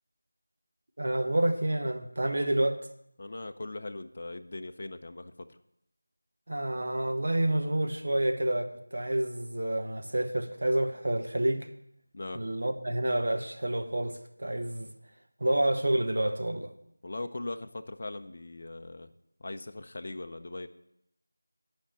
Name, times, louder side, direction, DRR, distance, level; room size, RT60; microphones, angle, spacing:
voice 1, 1.0-2.8 6.5-11.7 12.3-14.9 15.4-16.7, right 1 dB, 60° right, 5 dB, 1.1 m, -28 dB
voice 2, 3.2-5.3 12.1-12.4 17.0-19.1 19.4-20.7, left 2 dB, 40° left, 7 dB, 0.5 m, -39 dB
10.0 x 5.3 x 7.3 m, 0.77 s
figure-of-eight pair, 170°, 0 cm